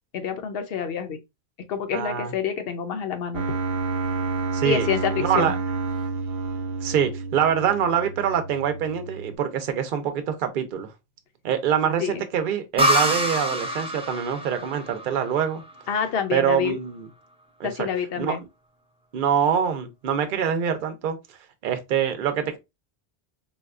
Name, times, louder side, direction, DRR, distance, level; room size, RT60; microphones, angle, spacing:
voice 1, 0.1-1.2 1.7-3.6 4.6-5.6 12.0-12.3 15.9-16.8 17.6-18.4, left 7 dB, 70° left, 0.8 m, -27 dB
voice 2, 1.9-2.3 4.5-4.9 5.2-5.5 6.8-10.9 11.4-15.6 16.3-17.1 17.6-17.7 18.2-18.4 19.1-21.2 21.6-22.6, right 8 dB, 60° right, 0.7 m, -24 dB
sound 1, 3.3-9.4, right 4 dB, 90° right, 0.8 m, -29 dB
sound 2, 12.8-16.3, equal, 10° right, 0.4 m, -26 dB
4.0 x 2.2 x 2.4 m
omnidirectional pair, 1.0 m